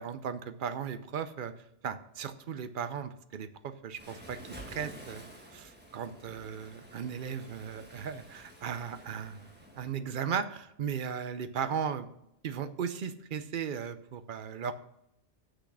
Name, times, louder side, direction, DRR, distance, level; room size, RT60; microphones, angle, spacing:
voice 1, 0.0-1.5 1.8-12.1 12.4-14.7, right 7 dB, 50° right, 11 dB, 0.7 m, -37 dB
Waves surf, 4.0-9.9, equal, 10° right, 1.4 m, -50 dB
6.5 x 6.2 x 6.1 m, 0.82 s
omnidirectional pair, 1.2 m